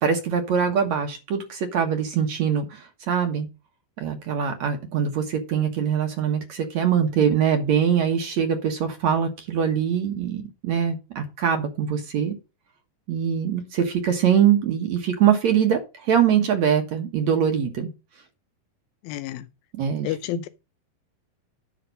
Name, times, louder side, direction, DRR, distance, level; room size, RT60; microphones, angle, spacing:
voice 1, 0.0-3.5 4.0-12.3 13.1-17.9 19.8-20.1, right 8 dB, 60° right, 2.1 m, -23 dB
voice 2, 19.0-19.5 20.0-20.5, left 14 dB, 80° left, 2.3 m, -30 dB
10.5 x 5.8 x 5.3 m
omnidirectional pair, 4.3 m